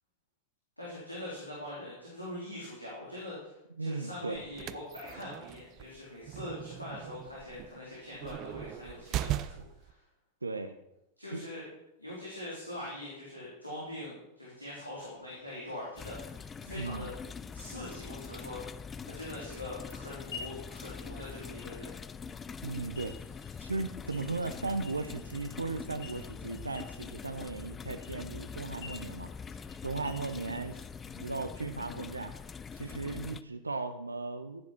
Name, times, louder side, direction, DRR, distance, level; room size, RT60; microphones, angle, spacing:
voice 1, 0.8-9.5 9.8-10.0 11.2-11.7 12.0-17.1 17.5-21.9, left 1 dB, 90° left, -7 dB, 3.9 m, -43 dB
voice 2, 3.8-4.4 10.4-10.7 11.3-11.4 16.7-17.1 22.6-23.2 23.6-29.3 29.8-30.8 31.2-32.3 32.7-34.6, right 3 dB, 80° right, 8 dB, 0.8 m, -36 dB
sound 1, 4.4-9.9, right 13 dB, 35° right, 0.5 m, -39 dB
sound 2, 15.0-30.8, left 6 dB, 60° left, 5.4 m, -54 dB
sound 3, 16.0-33.4, left 6 dB, 20° left, 0.5 m, -44 dB
15.0 x 9.8 x 4.5 m, 0.85 s
figure-of-eight pair, 90°, 0 cm